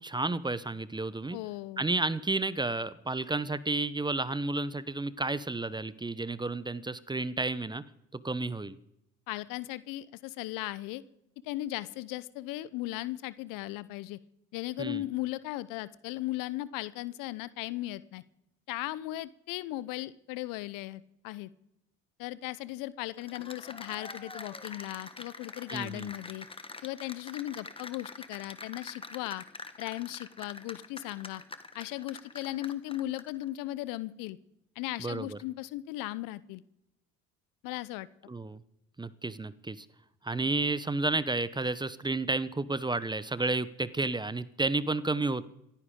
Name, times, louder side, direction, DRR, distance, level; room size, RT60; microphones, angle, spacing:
voice 1, 0.0-1.4 1.8-7.8 8.1-8.8 14.8-15.0 25.7-26.1 35.0-35.4 38.3-38.6 39.0-39.9 40.2-45.5, right 2 dB, 10° right, 17 dB, 0.7 m, -31 dB
voice 2, 1.3-1.8 9.3-11.0 11.4-14.2 14.5-18.2 18.7-21.5 22.2-26.5 26.8-29.4 29.8-31.4 31.7-34.4 34.8-36.6 37.6-38.1, left 16 dB, 65° left, 18 dB, 0.7 m, -37 dB
Cheering / Applause, 23.1-33.4, left 3 dB, 15° left, 1.4 m, -45 dB
27.0 x 10.0 x 3.7 m, 0.83 s
hypercardioid pair, 55°, 36 cm